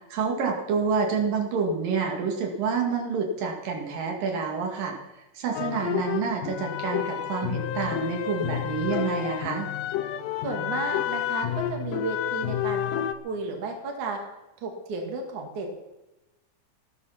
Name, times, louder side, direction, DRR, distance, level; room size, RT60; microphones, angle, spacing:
voice 1, 0.1-5.0 5.4-9.7, right 5 dB, 85° right, 1 dB, 3.9 m, -28 dB
sound 1, 5.5-13.1, left 10 dB, 85° left, 2.5 m, -30 dB
voice 2, 10.4-14.2 14.6-15.7, right 3 dB, 65° right, 2 dB, 3.5 m, -33 dB
15.0 x 13.0 x 5.8 m, 0.98 s
omnidirectional pair, 3.8 m